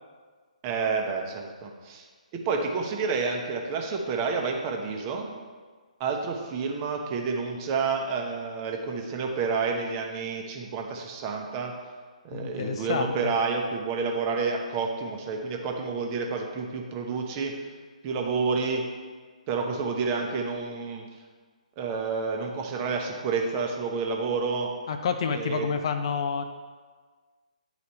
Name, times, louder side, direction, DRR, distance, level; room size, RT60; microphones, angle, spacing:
voice 1, 0.6-2.1 2.3-5.3 6.0-11.7 12.2-17.5 18.0-18.8 19.5-21.0 21.8-24.7 25.3-25.7, right 4 dB, 25° right, 2 dB, 0.9 m, -29 dB
voice 2, 12.3-13.3 24.9-26.4, left 6 dB, 45° left, 7 dB, 0.5 m, -29 dB
9.5 x 4.1 x 4.3 m, 1.5 s
figure-of-eight pair, 135°, 4 cm